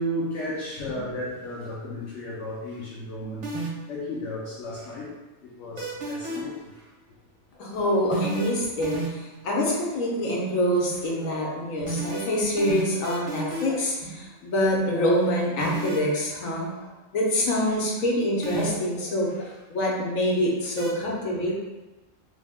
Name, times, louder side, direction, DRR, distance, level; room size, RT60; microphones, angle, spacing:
voice 1, 0.0-3.5 3.9-5.1 5.6-6.9 8.8-9.0 11.9-12.2 13.2-13.3 13.5-13.7 16.6-16.9 17.5-17.8 19.3-19.5 21.2-21.4, equal, 70° left, -6 dB, 0.9 m, -34 dB
sound 1, 3.4-4.0 5.8-6.6 8.1-9.4 11.9-13.9 15.6-16.1 18.4-19.0 20.8-20.9, right 2 dB, 40° right, 0.7 m, -31 dB
voice 2, 7.6-16.7 17.1-21.5, equal, 85° left, -3 dB, 1.2 m, -25 dB
3.4 x 2.0 x 3.5 m, 1.1 s
omnidirectional pair, 1.3 m